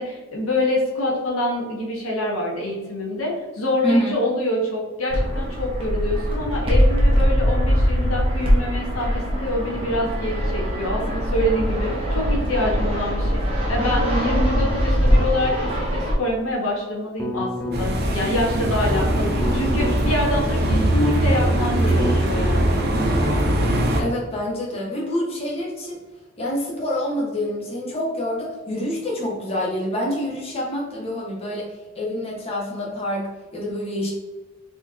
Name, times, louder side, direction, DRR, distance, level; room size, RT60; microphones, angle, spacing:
voice 1, 0.0-22.9, left 1 dB, 90° left, -2 dB, 1.2 m, -26 dB
voice 2, 3.8-4.2 24.0-26.0 26.4-31.7 31.9-34.1, equal, 30° left, -4 dB, 1.0 m, -26 dB
Fixed-wing aircraft airplane, 5.1-16.1, equal, 25° right, 1.1 m, -21 dB
sound 1, 17.2-18.0 18.5-20.0 20.4-22.4 22.6-23.7, equal, 10° left, 0.5 m, -29 dB
sound 2, 17.7-24.0, right 1 dB, 50° right, 0.8 m, -21 dB
4.2 x 3.0 x 3.6 m, 1.2 s
head